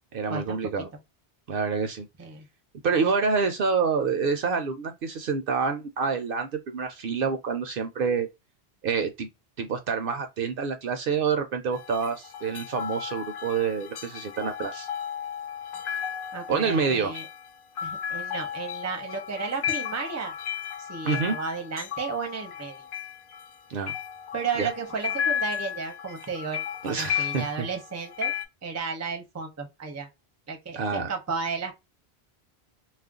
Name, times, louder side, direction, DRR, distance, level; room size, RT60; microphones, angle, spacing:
voice 1, 0.1-0.9 1.5-2.0 2.8-8.3 8.8-9.3 9.6-14.9 16.5-17.1 21.0-21.4 23.7-23.9 24.6-24.7 26.8-27.7 30.7-31.1, right 5 dB, 65° right, 0.7 m, -27 dB
sound 1, 11.7-28.4, left 9 dB, 60° left, 0.7 m, -34 dB
voice 2, 16.3-17.3 17.8-20.3 20.8-22.8 24.3-28.3 28.6-30.1 30.5-31.7, right 5 dB, 20° right, 0.5 m, -33 dB
2.4 x 2.0 x 3.5 m
omnidirectional pair, 1.1 m